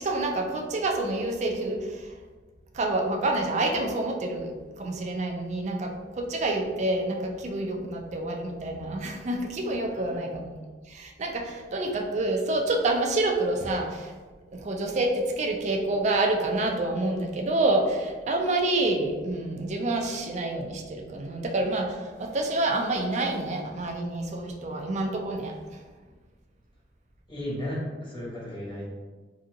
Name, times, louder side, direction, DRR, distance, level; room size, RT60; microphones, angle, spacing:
voice 1, 0.0-2.1 2.7-10.6 10.9-14.1 14.5-25.6, right 2 dB, 40° right, 2 dB, 0.4 m, -28 dB
voice 2, 9.8-10.3 27.3-28.9, left 1 dB, 25° left, -7 dB, 1.1 m, -35 dB
2.7 x 2.7 x 2.5 m, 1.4 s
head